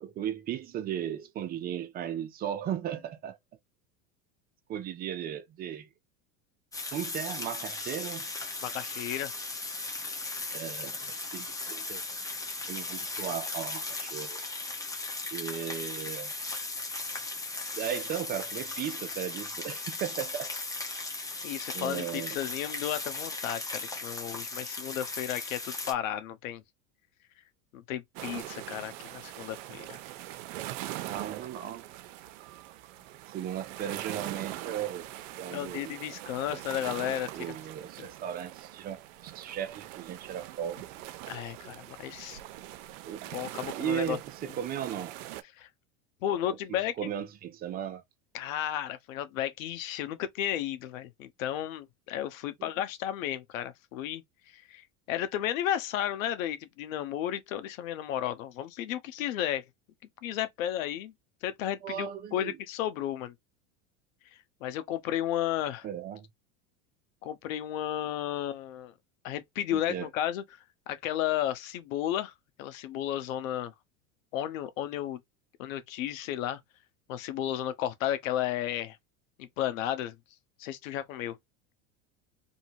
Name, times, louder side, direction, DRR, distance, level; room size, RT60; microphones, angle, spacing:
voice 1, 0.0-3.4 4.7-5.9 6.9-8.3 10.5-12.0 12.7-14.4 15.3-16.3 17.8-20.5 21.7-22.4 31.0-31.8 33.3-35.1 35.4-35.9 37.3-40.8 43.0-43.3 43.8-45.1 46.3-46.6 47.0-48.0 52.6-52.7 61.8-62.6 65.8-66.3 69.7-70.1, right 9 dB, 25° right, 0.4 m, -36 dB
sound 1, 6.7-25.9, left 3 dB, 10° left, 0.7 m, -37 dB
voice 2, 8.6-9.3 21.4-26.6 27.7-30.0 35.5-37.3 38.0-38.1 41.3-42.4 43.3-44.2 45.6-45.7 46.2-47.1 48.3-54.2 54.5-59.6 60.2-61.1 61.4-63.3 64.6-65.9 67.2-68.9 69.2-70.4 70.9-72.3 72.6-73.7 74.3-75.2 75.6-76.6 77.1-79.0 79.4-80.2 80.6-81.4, left 11 dB, 80° left, 0.9 m, -33 dB
sound 2, 28.1-45.4, right 15 dB, 70° right, 0.6 m, -42 dB
2.7 x 2.7 x 2.6 m
supercardioid pair, 125°, 39 cm